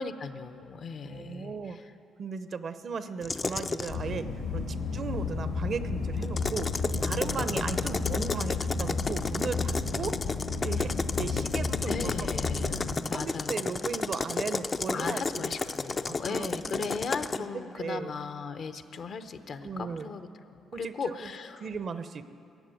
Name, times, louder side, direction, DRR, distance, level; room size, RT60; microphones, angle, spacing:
voice 1, 0.0-1.9 11.8-12.8 13.1-13.7 14.9-21.7, left 5 dB, 60° left, 9 dB, 0.8 m, -37 dB
voice 2, 1.0-1.8 2.2-4.3 4.5-6.7 7.0-10.2 10.6-12.3 12.6-12.7 13.1-15.6 16.1-16.9 17.3-18.1 19.6-20.1 20.7-21.3 21.6-22.3, right 5 dB, 50° right, 12 dB, 0.7 m, -36 dB
sound 1, 3.2-4.0 6.2-17.4, left 4 dB, 35° left, 0.5 m, -32 dB
sound 2, 3.9-12.9, left 4 dB, 75° left, 2.0 m, -32 dB
15.5 x 7.4 x 9.2 m, 2.5 s
cardioid pair, 90°, 0 cm